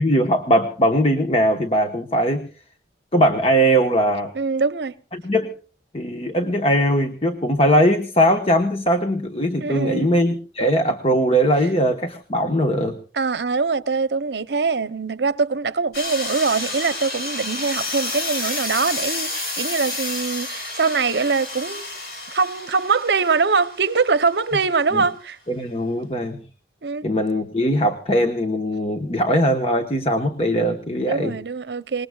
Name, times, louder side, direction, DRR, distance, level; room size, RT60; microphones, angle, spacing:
voice 1, 0.0-2.5 3.1-4.3 5.1-5.5 5.9-13.0 24.9-25.0 25.5-26.4 27.0-31.3, equal, 35° left, 1.2 m, -20 dB
voice 2, 4.3-5.0 9.6-10.1 13.1-21.9 22.3-25.4 26.8-27.1 31.1-32.1, right 4 dB, 75° right, 0.7 m, -23 dB
sound 1, 15.9-24.5, left 2 dB, 55° left, 5.4 m, -30 dB
25.0 x 21.0 x 2.3 m
head